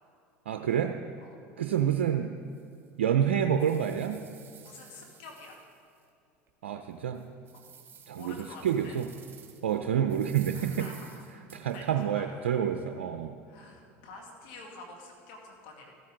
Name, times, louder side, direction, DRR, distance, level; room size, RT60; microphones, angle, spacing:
voice 1, 0.5-1.0 1.6-2.3 3.0-4.2 6.6-7.2 8.1-8.4 8.6-9.1 9.6-10.9 11.5-13.3, right 9 dB, 90° right, 7 dB, 0.4 m, -28 dB
sound 1, 2.0-2.1 2.6-2.7 3.2-6.0 6.5-6.6 7.1-9.8 10.1-12.0, right 7 dB, 35° right, 1.6 m, -53 dB
voice 2, 4.6-5.6 7.5-7.7 8.1-9.0 10.5-11.4 11.7-12.3 13.5-15.9, left 3 dB, 70° left, 0 dB, 2.2 m, -48 dB
15.0 x 8.4 x 3.8 m, 2.5 s
hypercardioid pair, 85°, 7 cm